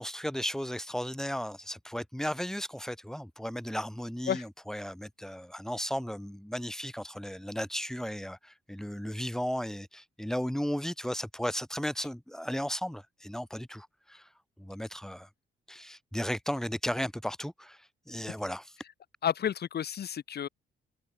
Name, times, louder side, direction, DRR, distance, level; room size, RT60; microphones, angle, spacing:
voice 1, 0.0-14.3 14.6-15.3 15.7-17.8 18.1-18.7, equal, ahead, 7.9 m, -35 dB
voice 2, 19.2-20.5, left 9 dB, 55° left, 1.1 m, -31 dB
cardioid pair, 90°, 20 cm